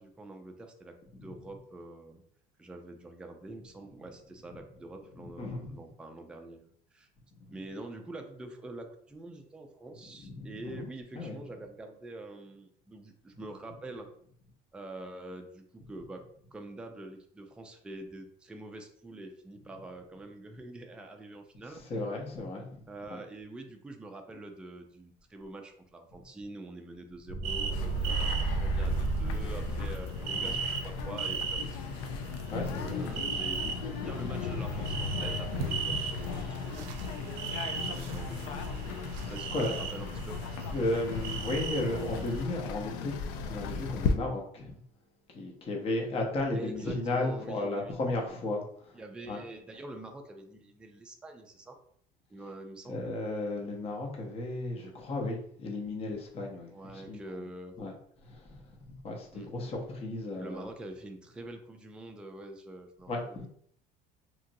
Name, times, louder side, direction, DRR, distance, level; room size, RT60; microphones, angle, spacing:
voice 1, 0.0-2.2 2.6-7.1 7.5-14.1 14.7-21.8 22.9-32.0 32.3-38.8 39.2-40.6 46.5-48.2 48.9-51.8 52.3-53.0 56.7-57.8 59.3-59.5 60.3-63.5, right 2 dB, 5° right, 4 dB, 0.3 m, -46 dB
voice 2, 5.2-5.8 10.2-10.9 11.2-11.4 21.9-22.8 23.1-23.2 29.4-29.5 30.3-30.6 32.5-33.2 39.2-39.7 40.7-43.1 43.4-44.8 45.3-48.9 49.3-49.4 52.9-57.2 57.8-57.9 58.2-58.6 58.9-60.7 63.1-63.5, left 2 dB, 35° left, 1 dB, 0.7 m, -34 dB
sound 1, 27.3-30.3, right 3 dB, 45° right, 0.6 m, -31 dB
sound 2, 27.4-42.4, right 6 dB, 90° right, 0.5 m, -38 dB
sound 3, 27.7-44.2, left 5 dB, 85° left, 0.4 m, -36 dB
2.9 x 2.5 x 2.6 m, 0.63 s
cardioid pair, 125°, 18 cm